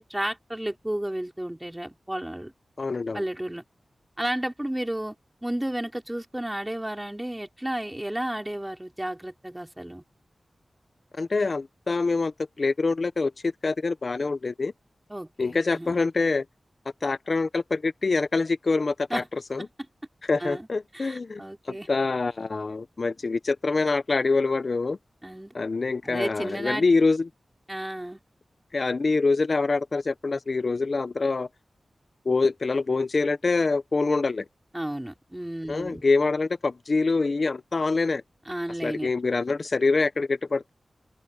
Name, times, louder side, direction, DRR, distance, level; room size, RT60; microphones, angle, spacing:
voice 1, 0.0-2.5 3.1-3.6 4.2-5.1 5.4-10.0 15.1-15.9 19.1-19.3 19.6-19.7 20.4-20.7 20.9-21.9 25.2-25.5 26.0-26.8 27.7-28.2 34.7-36.0 38.5-39.1, right 1 dB, 15° right, 4.7 m, -32 dB
voice 2, 2.8-3.2 11.2-13.3 13.6-14.7 15.4-16.4 17.0-19.7 20.2-25.0 25.5-27.3 28.7-31.5 32.2-34.4 35.7-38.2 38.8-40.7, left 3 dB, 60° left, 1.0 m, -25 dB
open air
cardioid pair, 40°, 0 cm